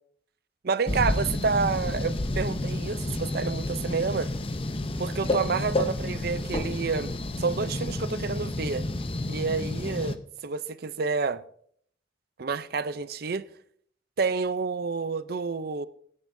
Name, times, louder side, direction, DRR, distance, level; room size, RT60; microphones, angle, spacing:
voice 1, 0.6-4.3 5.0-8.8 9.3-10.2 10.4-11.4 12.4-13.5 14.2-15.9, right 4 dB, 55° right, 0.5 m, -29 dB
sound 1, 0.9-10.1, left 2 dB, 30° left, 0.7 m, -30 dB
21.5 x 10.5 x 2.7 m
head